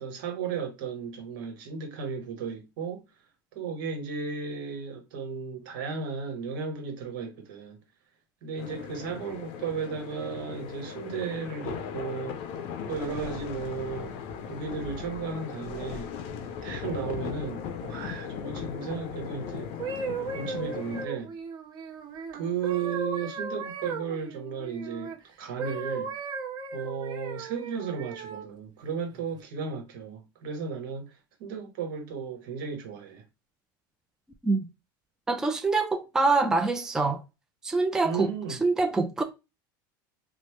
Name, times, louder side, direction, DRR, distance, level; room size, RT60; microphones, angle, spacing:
voice 1, 0.0-3.0 3.5-7.8 8.4-12.4 12.9-14.1 14.5-16.1 16.6-19.7 20.0-21.3 22.3-26.1 26.7-31.1 31.4-33.2 38.0-38.6, right 6 dB, 75° right, 1.1 m, -34 dB
sound 1, 8.6-21.1, left 7 dB, 55° left, 0.5 m, -38 dB
sound 2, 19.6-25.2 25.6-28.5 29.1-29.4, right 4 dB, 40° right, 0.7 m, -37 dB
voice 2, 35.3-37.2 37.6-39.2, right 3 dB, 5° right, 0.4 m, -25 dB
3.0 x 2.0 x 3.1 m
supercardioid pair, 120°, 11 cm